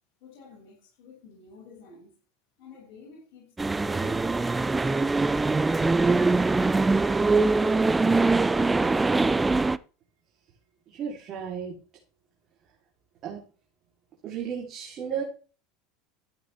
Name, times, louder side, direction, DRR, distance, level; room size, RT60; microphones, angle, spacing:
voice 1, 0.2-2.1 2.6-5.2, left 4 dB, 60° left, 6.4 m, -51 dB
sound 1, 3.6-9.8, right 3 dB, 15° right, 0.5 m, -23 dB
voice 2, 11.0-11.7 13.2-13.4 14.2-15.2, right 7 dB, 45° right, 3.4 m, -33 dB
13.5 x 8.7 x 3.5 m
hypercardioid pair, 75°, 0 cm